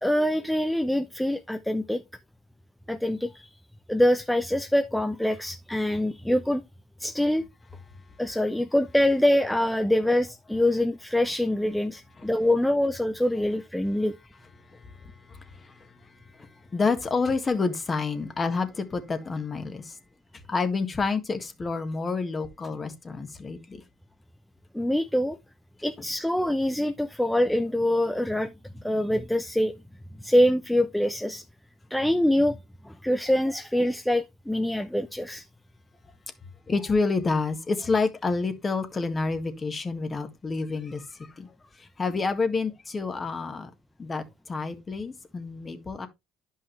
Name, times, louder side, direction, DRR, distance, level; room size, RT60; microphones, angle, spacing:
voice 1, 0.0-2.0 2.9-3.5 3.9-6.6 7.0-7.4 8.2-14.2 24.7-25.4 25.8-28.5 28.8-29.7 30.2-31.4 31.9-32.6 32.8-35.4, left 1 dB, 5° left, 0.6 m, -24 dB
voice 2, 14.7-16.0 16.3-20.0 20.5-23.8 36.7-41.5 41.8-43.7 44.0-46.1, left 4 dB, 30° left, 1.7 m, -29 dB
10.5 x 5.5 x 3.3 m
supercardioid pair, 80°, 0 cm